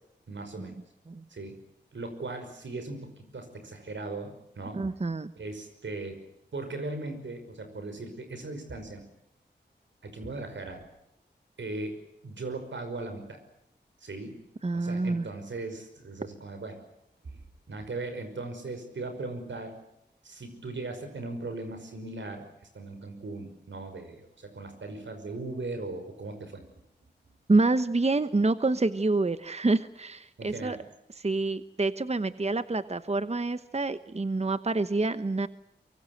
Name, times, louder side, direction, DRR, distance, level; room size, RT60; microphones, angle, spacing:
voice 1, 0.3-0.8 1.3-1.6 1.9-4.9 5.4-6.2 6.5-9.0 10.0-10.8 11.6-12.0 12.2-13.4 14.0-14.4 14.7-16.8 17.7-19.7 20.2-22.4 22.7-26.6 30.4-30.8, right 2 dB, 90° right, 7 dB, 5.6 m, -38 dB
voice 2, 4.7-5.3 14.6-15.3 27.5-30.8 31.2-35.5, right 3 dB, 35° right, 12 dB, 1.1 m, -27 dB
24.0 x 24.0 x 7.9 m, 0.81 s
cardioid pair, 45°, 19 cm